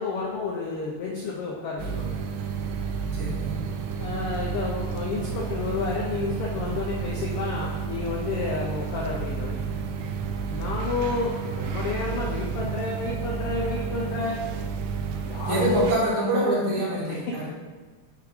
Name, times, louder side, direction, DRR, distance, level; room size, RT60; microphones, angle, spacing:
voice 1, 0.0-2.2 4.0-9.5 10.5-14.4 15.2-15.9 17.1-17.5, left 4 dB, 90° left, -3 dB, 1.2 m, -31 dB
sound 1, 1.8-15.9, right 5 dB, 85° right, 2.1 m, -31 dB
voice 2, 3.1-3.5 15.5-17.5, right 1 dB, 40° right, -6 dB, 1.7 m, -25 dB
6.6 x 3.4 x 4.8 m, 1.3 s
omnidirectional pair, 3.5 m